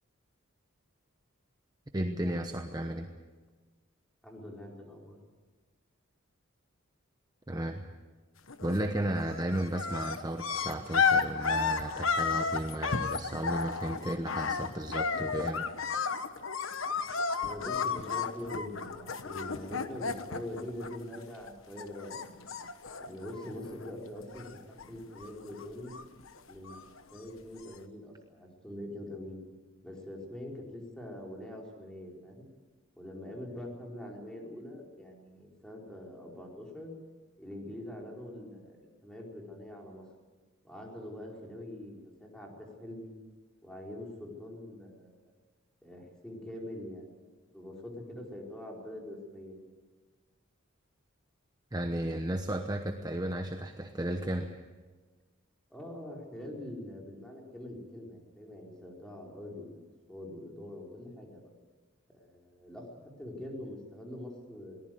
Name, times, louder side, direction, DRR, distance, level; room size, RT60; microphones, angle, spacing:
voice 1, 1.9-3.1 7.5-7.8 8.6-15.6 51.7-54.5, right 1 dB, 20° right, 5 dB, 1.0 m, -34 dB
voice 2, 4.2-5.2 17.4-22.5 23.0-24.5 24.9-25.9 26.5-29.4 29.8-32.5 33.0-36.9 37.4-40.0 40.6-43.1 43.6-45.3 45.8-47.1 47.5-49.7 55.7-59.8 60.1-61.4 62.1-64.8, left 1 dB, 5° left, -1 dB, 4.7 m, -44 dB
sound 1, 8.5-8.9 9.2-21.5 21.8-23.9 24.2-24.9 25.2-27.0 27.7-27.8, left 5 dB, 75° left, 1.2 m, -33 dB
22.5 x 19.0 x 7.9 m, 1.3 s
head